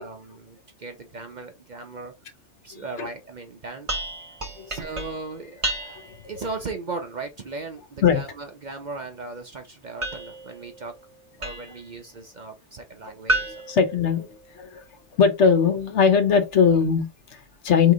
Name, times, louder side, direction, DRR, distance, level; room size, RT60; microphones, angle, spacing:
voice 1, 0.0-2.1 2.6-3.9 4.7-10.9 11.4-13.6, right 3 dB, 50° right, 0.6 m, -37 dB
voice 2, 2.7-3.1 4.6-4.7 8.0-8.2 13.7-14.3 14.5-14.8 15.2-17.9, left 6 dB, 70° left, 1.1 m, -20 dB
sound 1, 3.9-6.3 10.0-11.9 13.3-14.7, right 1 dB, 30° right, 0.9 m, -32 dB
4.7 x 3.1 x 3.7 m
omnidirectional pair, 1.2 m